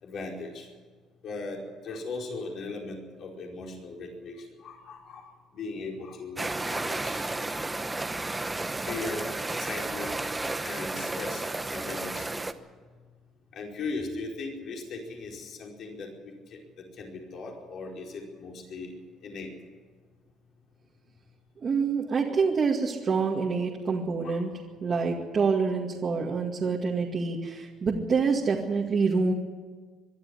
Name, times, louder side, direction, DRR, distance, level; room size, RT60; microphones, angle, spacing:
voice 1, 0.0-0.7 1.2-7.3 8.8-9.3 9.6-10.1 10.6-12.4 13.5-18.9 19.2-19.5 24.2-24.4, left 3 dB, 55° left, 0 dB, 4.9 m, -38 dB
sound 1, 6.4-12.5, right 2 dB, 15° right, 1.0 m, -32 dB
voice 2, 21.6-24.5 24.8-29.3, right 5 dB, 35° right, -2 dB, 2.2 m, -26 dB
23.5 x 12.0 x 10.0 m, 1.5 s
cardioid pair, 130°, 0 cm